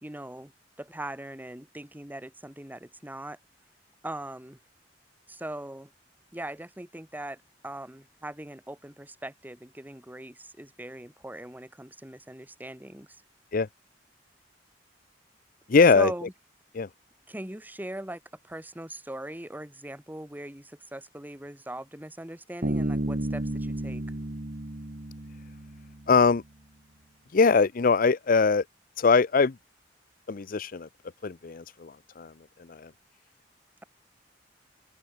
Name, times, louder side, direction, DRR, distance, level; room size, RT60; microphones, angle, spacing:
voice 1, 0.0-0.5 0.8-3.4 4.0-4.6 5.3-5.9 6.3-13.1 15.9-16.3 17.3-24.0, right 1 dB, 10° right, 1.8 m, -40 dB
voice 2, 15.7-16.1 16.7-16.9 26.1-26.4 27.3-28.6 29.0-29.5 30.3-30.9 31.2-32.3 32.7-32.9, left 4 dB, 50° left, 0.6 m, -22 dB
Bass guitar, 22.6-26.2, right 1 dB, 50° right, 1.5 m, -32 dB
open air
head